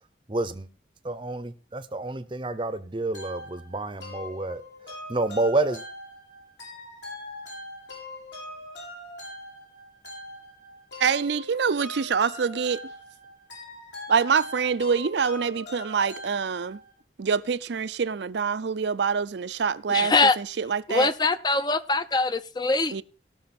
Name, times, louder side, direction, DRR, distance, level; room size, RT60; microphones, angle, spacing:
voice 1, 0.3-0.7 1.0-4.6 5.1-5.8, right 2 dB, 25° right, 0.7 m, -28 dB
sound 1, 3.1-17.0, left 1 dB, 70° left, 5.7 m, -42 dB
voice 2, 11.0-12.8 14.1-16.8 17.2-21.1 22.9-23.0, right 6 dB, 70° right, 0.5 m, -25 dB
voice 3, 19.9-20.4 20.9-23.0, left 3 dB, 25° left, 0.5 m, -23 dB
17.5 x 6.2 x 4.2 m
head